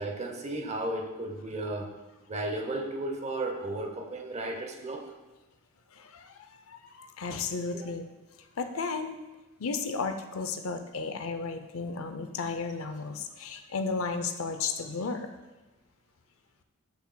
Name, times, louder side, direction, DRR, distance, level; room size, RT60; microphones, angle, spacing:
voice 1, 0.0-2.0 2.3-5.1 7.7-7.9, right 2 dB, 30° right, 4 dB, 0.8 m, -34 dB
voice 2, 5.9-8.1 8.6-9.2 9.6-15.3, left 4 dB, 75° left, 8 dB, 0.6 m, -34 dB
10.0 x 5.8 x 2.3 m, 1.1 s
head